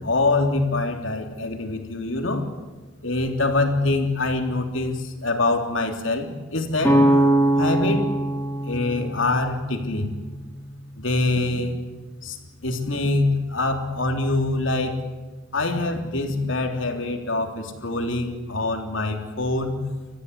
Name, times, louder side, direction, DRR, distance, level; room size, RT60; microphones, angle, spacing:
voice 1, 0.0-2.5 3.0-7.0 7.6-8.0 8.6-10.1 11.0-11.8 12.2-12.4 12.6-15.0 15.5-19.8, left 2 dB, 70° left, 4 dB, 3.4 m, -24 dB
sound 1, 6.8-10.6, right 1 dB, 10° left, 3.6 m, -22 dB
30.0 x 14.5 x 9.6 m, 1.3 s
head